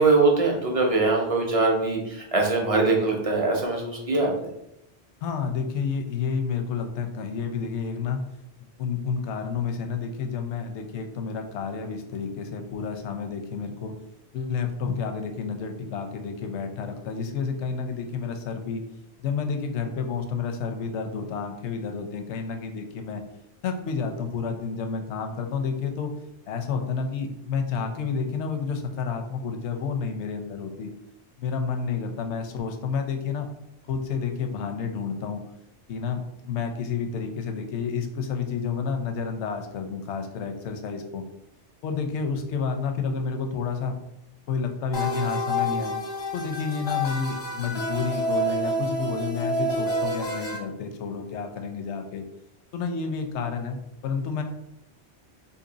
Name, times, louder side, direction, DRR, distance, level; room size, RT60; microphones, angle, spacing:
voice 1, 0.0-4.5, right 3 dB, 40° right, 0 dB, 0.6 m, -22 dB
voice 2, 5.2-8.2 8.6-13.9 14.3-18.8 19.2-23.2 23.6-26.1 26.5-30.9 31.4-33.5 33.9-35.4 35.9-41.2 41.8-44.0 44.5-45.9 46.3-52.2 52.7-54.4, left 5 dB, 85° left, 5 dB, 0.9 m, -30 dB
sound 1, 44.9-50.6, equal, 35° left, 0.4 m, -28 dB
2.8 x 2.7 x 3.8 m, 0.84 s
omnidirectional pair, 1.1 m